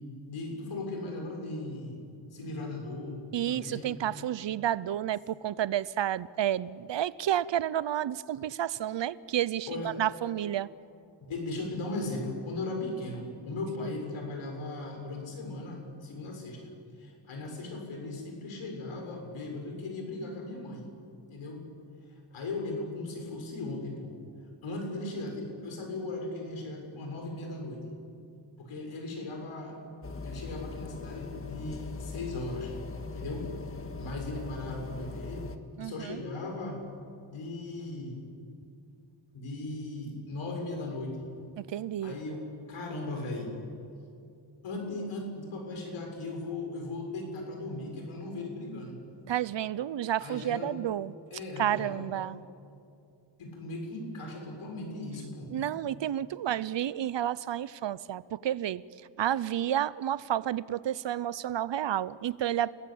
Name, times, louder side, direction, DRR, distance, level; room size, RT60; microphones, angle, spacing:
voice 1, 0.2-2.0 2.3-3.9 9.7-9.9 11.2-16.7 17.0-20.9 21.3-21.6 22.3-24.1 24.6-27.8 28.6-29.8 30.2-32.7 33.1-33.5 33.9-35.5 35.8-36.8 37.3-38.2 39.3-41.2 42.0-43.5 44.6-48.9 50.2-50.8 51.3-52.2 53.4-55.5, left 2 dB, 90° left, 2 dB, 6.8 m, -37 dB
voice 2, 3.3-10.7 13.8-13.9 35.8-36.2 41.6-42.2 49.3-51.1 51.6-52.4 55.5-58.8 59.2-62.7, right 11 dB, 65° right, 19 dB, 0.8 m, -31 dB
sound 1, 30.0-35.6, left 4 dB, 25° left, 1.8 m, -40 dB
29.5 x 19.5 x 8.7 m, 2.5 s
cardioid pair, 100°, 48 cm